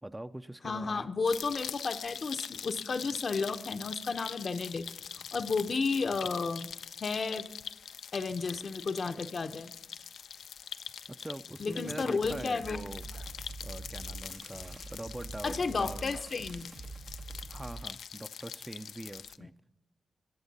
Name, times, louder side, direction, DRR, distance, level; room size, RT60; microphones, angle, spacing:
voice 1, 0.0-1.1 11.1-13.0 13.6-16.2 17.5-19.5, right 1 dB, 15° right, 10 dB, 0.5 m, -43 dB
voice 2, 0.6-6.7 7.0-7.5 8.1-9.7 11.6-12.8 15.4-16.7, left 4 dB, 60° left, 8 dB, 0.7 m, -32 dB
sound 1, 1.3-19.4, left 7 dB, 85° left, 0.3 m, -44 dB
sound 2, 12.2-17.8, right 3 dB, 75° right, 1.3 m, -45 dB
20.0 x 7.1 x 4.1 m, 0.90 s
cardioid pair, 50°, 0 cm